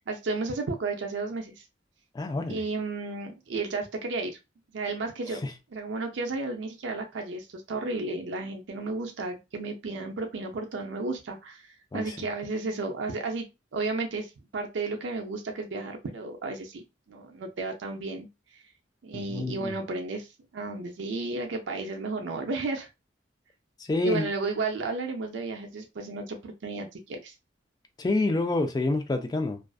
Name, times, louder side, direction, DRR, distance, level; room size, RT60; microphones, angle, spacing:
voice 1, 0.1-1.6 2.5-4.3 4.7-5.4 5.7-18.3 19.0-22.9 24.0-27.3, right 3 dB, 70° right, 0.4 m, -33 dB
voice 2, 2.1-2.6 5.3-5.5 11.9-12.2 19.1-19.8 23.8-24.3 28.0-29.7, left 2 dB, 20° left, 0.3 m, -28 dB
2.4 x 2.4 x 2.3 m
head